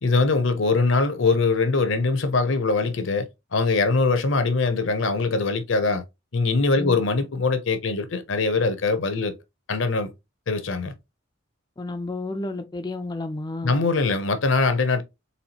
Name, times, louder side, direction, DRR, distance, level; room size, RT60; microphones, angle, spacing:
voice 1, 0.0-6.0 6.3-9.3 9.7-10.1 10.5-10.9 13.6-15.0, left 3 dB, 70° left, 0.7 m, -22 dB
voice 2, 11.8-13.7, left 2 dB, 20° left, 0.4 m, -31 dB
4.2 x 3.5 x 2.9 m
head